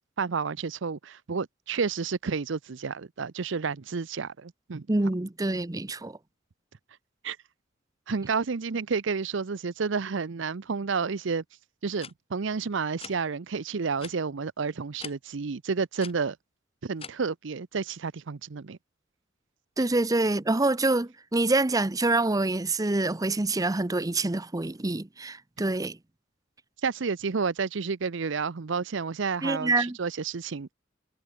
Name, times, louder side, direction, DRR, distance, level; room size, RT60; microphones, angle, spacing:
voice 1, 0.2-4.9 7.2-7.4 8.1-11.4 11.8-16.4 16.8-18.8 26.8-30.7, right 5 dB, 65° right, 0.6 m, -30 dB
voice 2, 4.9-6.2 19.8-26.0 29.4-30.0, right 2 dB, 20° right, 0.6 m, -26 dB
sound 1, 12.0-12.1 13.0-13.2 14.0-14.1 15.0-15.1 16.0-16.1 17.0-17.1, left 6 dB, 30° left, 4.5 m, -41 dB
head